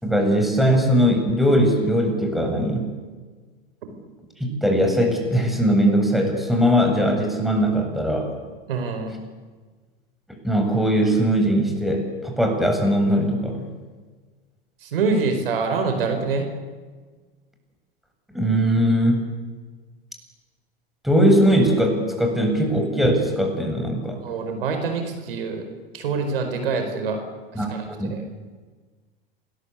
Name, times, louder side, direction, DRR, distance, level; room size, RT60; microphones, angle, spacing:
voice 1, 0.0-2.9 4.4-8.3 10.4-13.7 18.3-19.2 21.0-24.2 27.5-28.2, equal, ahead, 3 dB, 7.6 m, -20 dB
voice 2, 8.7-9.1 14.8-16.5 24.2-25.7 25.9-27.2 27.5-28.2, right 4 dB, 70° right, 6 dB, 4.9 m, -25 dB
28.0 x 21.0 x 8.4 m, 1.4 s
hypercardioid pair, 85°, 29 cm